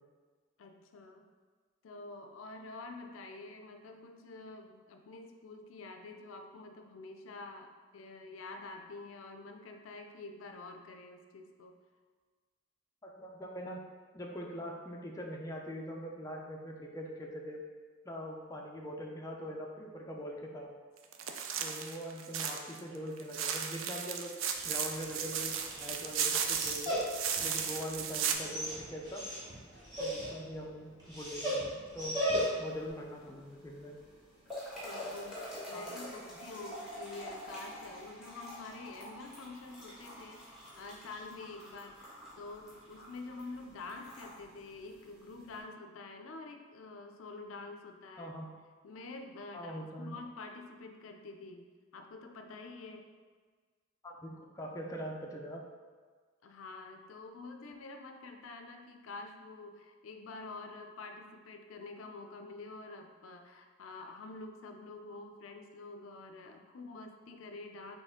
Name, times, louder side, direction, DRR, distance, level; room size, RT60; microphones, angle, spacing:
voice 1, 0.6-1.2 1.8-11.8 34.7-48.3 48.8-51.6 51.9-53.1 56.4-68.0, left 3 dB, 80° left, 4 dB, 0.4 m, -47 dB
voice 2, 13.0-13.8 14.1-17.6 18.0-20.7 21.6-24.3 24.6-27.0 27.4-29.3 30.0-32.2 32.6-34.0 35.7-35.9 36.2-36.4 48.2-48.5 49.5-50.2 54.0-55.7, equal, 15° left, -1 dB, 0.4 m, -42 dB
sound 1, 21.1-22.8 23.2-28.3, right 7 dB, 75° right, 0.4 m, -35 dB
Dog, 24.5-32.8, equal, 20° right, 1.1 m, -38 dB
sound 2, 32.6-45.6, equal, 5° right, 1.3 m, -48 dB
4.2 x 3.2 x 3.7 m, 1.5 s
head